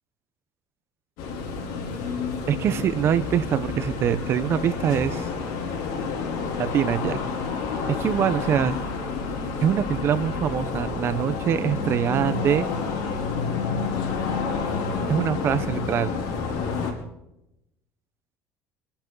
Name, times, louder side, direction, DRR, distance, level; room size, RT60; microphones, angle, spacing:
sound 1, 1.2-16.9, left 4 dB, 75° left, 5.0 m, -29 dB
voice 1, 2.5-5.3 6.6-7.2 7.9-8.7 9.6-12.7 15.1-16.1, right 9 dB, 40° right, 13 dB, 1.0 m, -24 dB
28.0 x 11.5 x 4.0 m, 0.86 s
cardioid pair, 145°, 6 cm